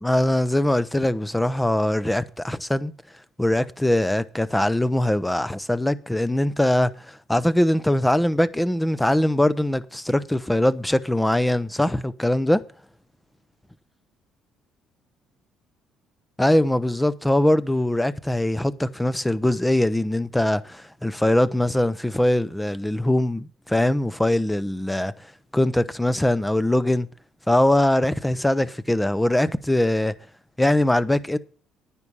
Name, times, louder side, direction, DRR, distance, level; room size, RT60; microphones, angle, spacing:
voice 1, 0.0-2.9 3.4-12.6 16.4-25.1 25.5-27.1 27.5-30.1 30.6-31.4, left 1 dB, 5° left, 0.7 m, -22 dB
9.8 x 9.8 x 5.5 m
cardioid pair, 120°, 0 cm